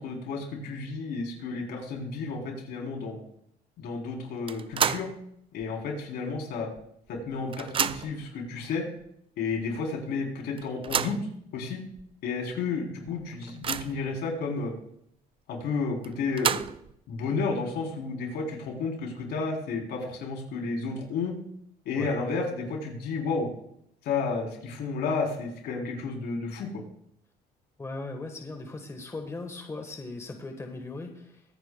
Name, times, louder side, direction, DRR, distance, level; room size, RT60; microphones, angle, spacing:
voice 1, 0.0-3.2 3.8-5.1 5.5-6.7 7.1-8.9 9.4-11.2 11.5-11.8 12.2-14.7 15.5-16.6 17.1-21.3 21.9-23.5 24.0-26.8, left 4 dB, 75° left, 0 dB, 3.8 m, -32 dB
sound 1, 4.5-5.2 5.6-5.7 6.8-6.9 7.2-8.3 9.0-9.1 9.5-9.6 10.6-11.3 12.0-12.1 12.5-12.6 13.1-14.1 16.0-17.0, right 8 dB, 30° right, 0.4 m, -30 dB
voice 2, 27.8-31.4, left 3 dB, 15° left, 4 dB, 1.5 m, -38 dB
23.5 x 9.3 x 2.3 m, 0.72 s
cardioid pair, 110°, 17 cm